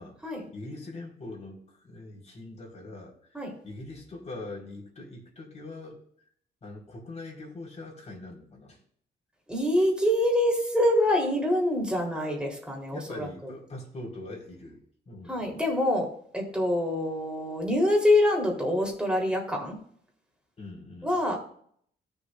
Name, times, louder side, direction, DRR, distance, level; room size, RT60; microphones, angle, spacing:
voice 1, 0.5-3.4 3.6-6.0 6.6-8.8 12.9-14.8 15.1-15.5 20.6-21.2, left 2 dB, 40° left, -2 dB, 4.5 m, -42 dB
voice 2, 9.5-13.5 15.3-16.1 16.3-19.8 21.0-21.4, left 1 dB, 5° right, -1 dB, 3.8 m, -25 dB
18.5 x 7.0 x 2.6 m, 0.62 s
cardioid pair, 95°, 18 cm